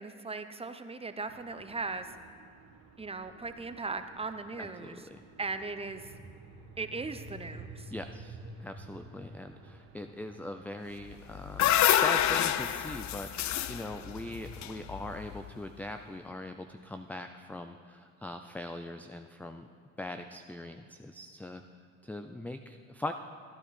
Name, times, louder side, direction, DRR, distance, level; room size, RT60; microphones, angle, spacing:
voice 1, 0.0-2.1 3.0-5.0 5.4-6.1 6.8-7.9, right 3 dB, 15° right, 9 dB, 0.8 m, -38 dB
sound 1, 1.3-15.2, right 2 dB, 70° right, 1.3 m, -52 dB
voice 2, 4.6-5.2 7.9-19.7 20.0-21.6 22.0-23.1, left 1 dB, 5° left, 7 dB, 0.4 m, -41 dB
sound 2, 11.1-15.4, left 11 dB, 50° left, 0.6 m, -28 dB
14.0 x 9.9 x 4.2 m, 2.4 s
supercardioid pair, 65°, 37 cm